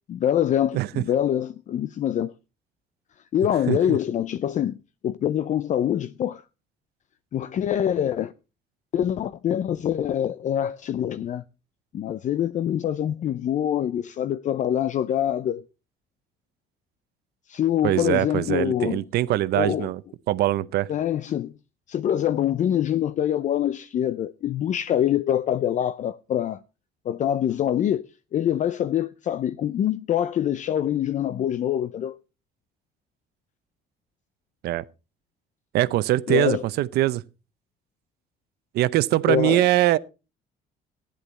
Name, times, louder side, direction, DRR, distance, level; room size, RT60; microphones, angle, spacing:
voice 1, 0.1-2.3 3.3-4.8 5.0-6.4 7.3-8.3 8.9-11.4 11.9-15.6 17.5-19.1 19.5-19.9 20.9-21.5 21.9-26.6 27.1-28.1 28.3-32.2 36.3-36.6 39.3-39.6, left 10 dB, 45° left, 0.5 m, -25 dB
voice 2, 0.7-1.0 3.7-4.0 17.8-20.0 20.3-20.9 34.6-34.8 35.7-37.2 38.7-40.0, right 15 dB, 75° right, 0.7 m, -22 dB
15.0 x 10.5 x 4.0 m
cardioid pair, 110°, 17 cm